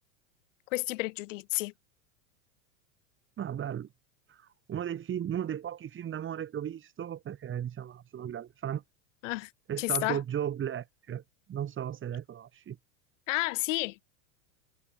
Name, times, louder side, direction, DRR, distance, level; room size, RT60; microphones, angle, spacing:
voice 1, 0.7-1.7 9.2-9.5 9.8-10.2 13.3-14.0, left 22 dB, 70° left, 4.3 m, -31 dB
voice 2, 3.4-3.9 4.3-8.8 9.7-11.2 11.5-12.8, right 9 dB, 30° right, 7.1 m, -35 dB
supercardioid pair, 120°, 39 cm